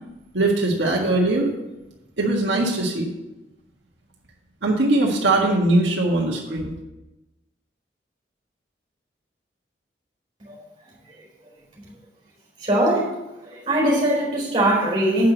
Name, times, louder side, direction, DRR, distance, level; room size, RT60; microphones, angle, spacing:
voice 1, 0.3-1.5 2.2-3.1 4.6-6.7, right 2 dB, 80° right, 1.7 m, -21 dB
voice 2, 12.6-13.1 13.5-15.3, right 1 dB, 30° right, 4.2 m, -20 dB
8.4 x 6.2 x 7.9 m
head